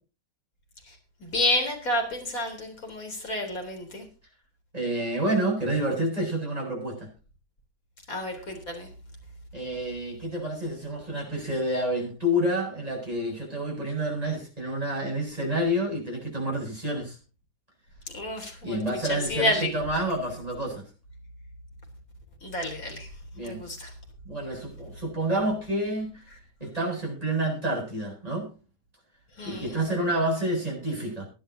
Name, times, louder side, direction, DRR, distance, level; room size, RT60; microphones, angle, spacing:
voice 1, 1.2-4.0 8.1-8.9 18.1-18.8 19.1-19.7 22.4-23.1 23.4-23.9 29.4-29.8, left 1 dB, 60° left, 3 dB, 4.4 m, -29 dB
voice 2, 4.7-7.1 9.5-17.2 18.6-20.8 23.3-23.6 24.2-26.2 26.6-28.5 29.4-31.3, right 1 dB, 25° right, -1 dB, 7.9 m, -29 dB
23.0 x 10.5 x 2.8 m, 0.33 s
omnidirectional pair, 1.7 m